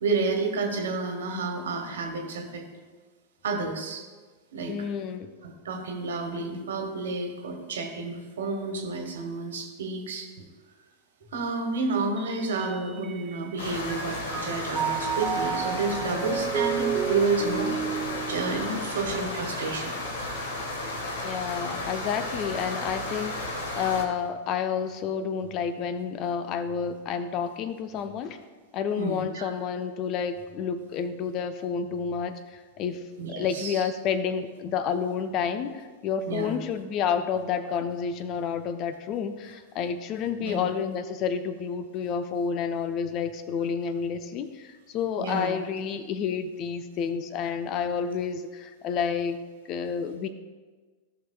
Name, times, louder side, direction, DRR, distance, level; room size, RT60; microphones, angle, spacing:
voice 1, 0.0-2.6 3.4-4.0 4.5-4.7 5.4-10.3 11.3-17.7 18.3-19.9 29.0-29.5 33.2-33.8 36.2-36.5 40.4-40.6 45.2-45.5, right 3 dB, 60° right, 3 dB, 1.4 m, -30 dB
voice 2, 4.7-5.3 21.2-28.4 28.7-33.0 33.3-49.4 49.7-50.3, left 7 dB, 35° left, 10 dB, 0.6 m, -30 dB
Mallet percussion, 12.4-13.5 13.9-19.3, right 8 dB, 25° right, 0.3 m, -32 dB
sound 1, 13.6-24.0, left 2 dB, 60° left, 1.3 m, -33 dB
16.0 x 5.9 x 2.2 m, 1.4 s
figure-of-eight pair, 90°, 0 cm